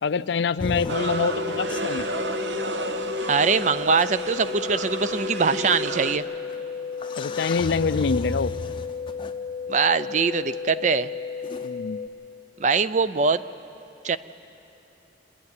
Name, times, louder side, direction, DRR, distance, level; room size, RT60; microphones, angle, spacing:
voice 1, 0.0-2.1 7.2-8.5 11.6-12.1, left 5 dB, 70° left, 15 dB, 0.4 m, -25 dB
sound 1, 0.6-1.0 1.7-2.0 3.4-3.5 4.0-4.1 5.2-5.3 6.5-6.6 7.0-9.3 11.4-11.7, left 2 dB, 25° left, 0.6 m, -33 dB
sound 2, 0.6-12.1, left 6 dB, 5° left, 0.9 m, -34 dB
sound 3, 0.9-6.2, right 2 dB, 75° right, 0.9 m, -31 dB
voice 2, 3.3-6.2 9.7-11.1 12.6-13.4 14.0-14.2, right 5 dB, 40° right, 15 dB, 0.4 m, -22 dB
26.5 x 10.5 x 9.7 m, 3.0 s
head